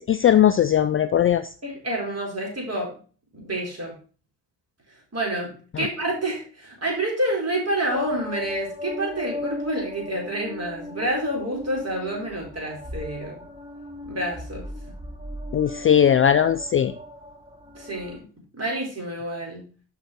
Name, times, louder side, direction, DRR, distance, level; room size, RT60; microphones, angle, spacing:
voice 1, 0.1-1.4 15.5-16.9, left 9 dB, 30° left, 12 dB, 0.4 m, -18 dB
voice 2, 1.6-2.9 3.3-3.9 5.1-13.4 14.0-14.7 17.8-18.2 18.6-19.6, right 1 dB, 35° right, -1 dB, 4.1 m, -28 dB
sound 1, 7.9-18.2, left 1 dB, 10° right, 1.6 m, -37 dB
6.3 x 5.5 x 4.6 m, 0.39 s
hypercardioid pair, 45°, 44 cm